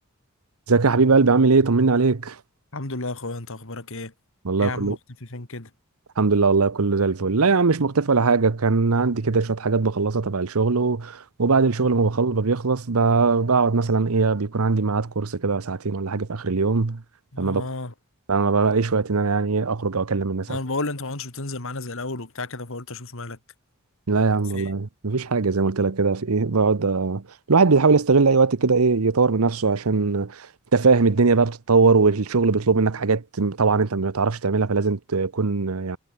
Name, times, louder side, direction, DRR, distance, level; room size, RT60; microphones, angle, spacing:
voice 1, 0.7-2.4 4.4-5.0 6.2-17.0 17.4-17.7 18.3-20.6 24.1-30.5 30.7-36.0, right 4 dB, 85° right, 0.9 m, -20 dB
voice 2, 2.7-4.1 4.6-5.7 12.0-12.1 17.3-17.9 20.5-23.4 24.5-24.7, left 2 dB, 65° left, 2.7 m, -32 dB
head